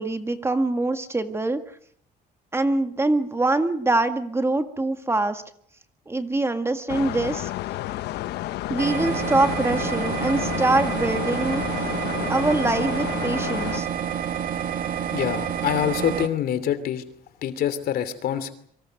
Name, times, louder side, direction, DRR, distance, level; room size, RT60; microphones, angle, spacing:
voice 1, 0.0-1.6 2.5-5.4 6.1-7.5 8.7-11.6 12.3-13.9, right 2 dB, 15° right, 8 dB, 1.9 m, -24 dB
sound 1, 6.9-13.8, left 15 dB, 80° left, 1.0 m, -31 dB
sound 2, 8.8-16.3, right 8 dB, 55° right, 2.5 m, -28 dB
voice 2, 15.1-17.0 17.4-18.5, left 10 dB, 65° left, 12 dB, 3.0 m, -25 dB
26.5 x 24.5 x 6.6 m, 0.65 s
cardioid pair, 110°, 17 cm